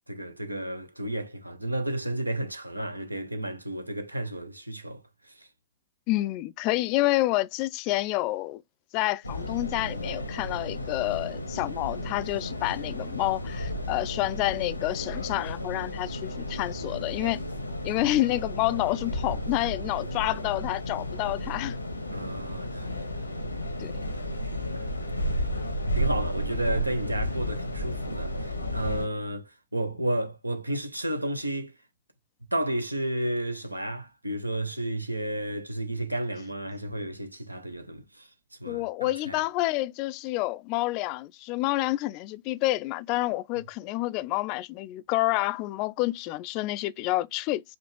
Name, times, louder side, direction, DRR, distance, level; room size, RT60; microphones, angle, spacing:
voice 1, 0.1-5.0 22.1-23.3 24.8-25.0 25.9-28.3 28.7-31.7 32.5-38.2 38.6-39.4, right 1 dB, 85° right, 0.7 m, -32 dB
voice 2, 6.1-8.6 8.9-17.4 17.8-21.8 23.8-23.9 38.6-47.6, left 18 dB, 40° left, 0.3 m, -28 dB
sound 1, 9.2-29.1, equal, 85° left, 0.8 m, -33 dB
5.2 x 2.4 x 3.1 m
figure-of-eight pair, 105°, 0 cm